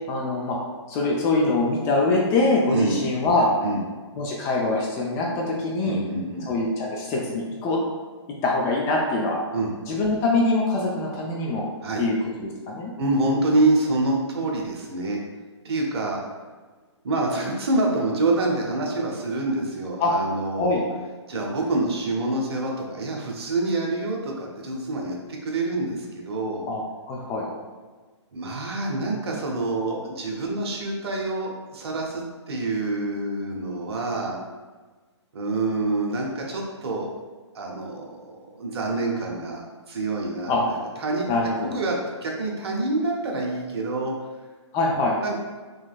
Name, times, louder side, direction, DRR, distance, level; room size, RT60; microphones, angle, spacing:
voice 1, 0.1-0.6 0.9-3.5 4.2-6.0 6.5-7.8 8.4-9.4 9.9-11.7 12.0-12.9 20.0-20.1 20.6-20.8 26.7-27.5 40.5-40.6 41.3-41.8 44.7-45.2, left 2 dB, 20° left, -2 dB, 0.4 m, -24 dB
voice 2, 5.8-6.5 9.5-9.7 11.8-12.0 13.0-15.2 15.6-16.2 17.0-20.8 21.3-26.6 28.3-34.4 35.3-37.1 37.5-41.4 41.7-44.1 45.2-45.4, right 2 dB, 55° right, 0 dB, 0.9 m, -26 dB
4.0 x 3.0 x 2.4 m, 1.3 s
hypercardioid pair, 135°, 15 cm